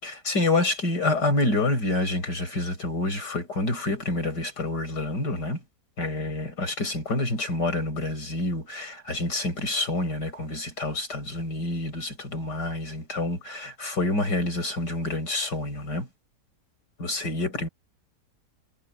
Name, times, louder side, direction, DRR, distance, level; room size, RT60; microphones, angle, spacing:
voice 1, 0.0-5.6 6.0-16.1 17.0-17.7, left 2 dB, 80° left, 7.0 m, -28 dB
omnidirectional pair, 1.8 m